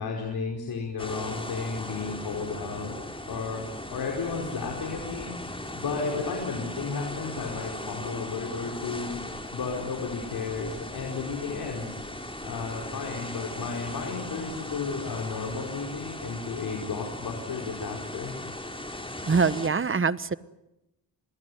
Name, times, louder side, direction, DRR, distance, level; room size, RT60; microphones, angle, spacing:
voice 1, 0.0-5.3 5.7-9.2 9.5-12.0 12.4-18.3, left 4 dB, 75° left, 1 dB, 4.9 m, -33 dB
sound 1, 1.0-19.7, left 1 dB, 15° left, 5.6 m, -38 dB
voice 2, 19.3-20.4, right 5 dB, 35° right, 15 dB, 1.3 m, -24 dB
27.0 x 20.5 x 9.5 m, 0.92 s
cardioid pair, 60°, 37 cm